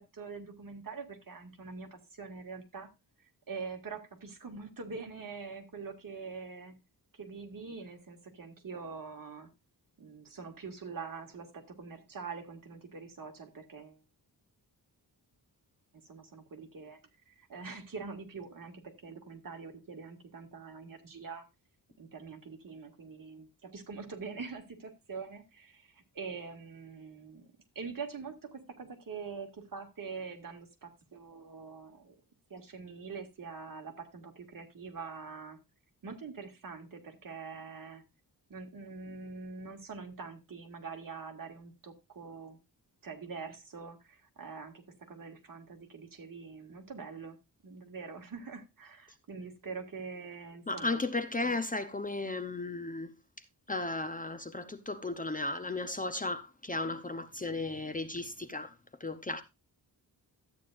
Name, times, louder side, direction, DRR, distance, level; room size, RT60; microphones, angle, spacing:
voice 1, 0.1-2.9 3.5-6.8 7.1-9.5 10.0-14.0 16.0-17.0 17.3-21.5 22.0-27.5 27.8-32.2 32.5-35.6 36.0-38.0 38.5-42.6 43.0-47.4 47.6-51.0 51.4-51.6, right 5 dB, 55° right, 2.1 m, -44 dB
voice 2, 50.7-53.1 53.7-59.4, left 2 dB, 20° left, 0.8 m, -35 dB
13.0 x 9.0 x 2.5 m
wide cardioid pair, 125°, 40 cm